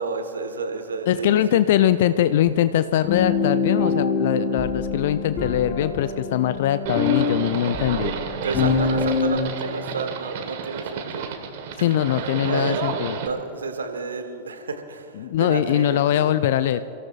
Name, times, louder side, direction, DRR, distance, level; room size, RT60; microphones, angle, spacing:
voice 1, 0.0-1.6 8.4-11.3 11.8-11.9 12.4-12.8 13.2-16.0, right 4 dB, 70° right, 7 dB, 1.4 m, -31 dB
voice 2, 1.1-8.1 11.8-13.2 15.2-16.8, left 11 dB, 55° left, 13 dB, 0.4 m, -22 dB
sound 1, 3.1-9.4, left 4 dB, 40° left, 4.6 m, -25 dB
Livestock farm animals working animals, 6.9-13.3, right 6 dB, 50° right, 1.5 m, -31 dB
29.5 x 17.0 x 2.5 m, 2.8 s
figure-of-eight pair, 90°, 0 cm